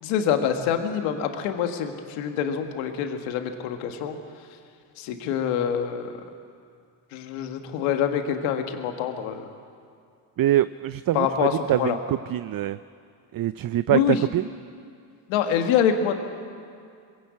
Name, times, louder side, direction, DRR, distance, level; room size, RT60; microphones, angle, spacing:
voice 1, 0.0-4.2 5.0-6.2 7.1-9.5 11.1-12.0 13.9-14.2 15.3-16.1, left 8 dB, 85° left, 6 dB, 1.6 m, -25 dB
voice 2, 10.4-12.8 13.3-14.5, right 13 dB, 45° right, 15 dB, 0.6 m, -24 dB
21.0 x 16.5 x 8.3 m, 2.3 s
hypercardioid pair, 50°, 47 cm